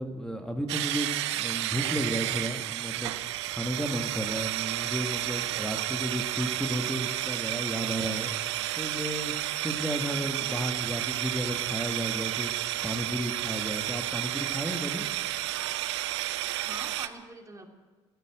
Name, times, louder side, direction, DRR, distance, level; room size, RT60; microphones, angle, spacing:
voice 1, 0.0-3.1 3.5-8.3 8.7-12.5 12.8-15.1, equal, 5° left, 4 dB, 1.7 m, -33 dB
sound 1, 0.7-17.1, right 15 dB, 80° right, 0.5 m, -31 dB
voice 2, 10.1-10.5 16.6-17.7, right 2 dB, 20° right, 2 dB, 2.8 m, -44 dB
15.5 x 10.0 x 8.9 m, 1.3 s
figure-of-eight pair, 50°, 14 cm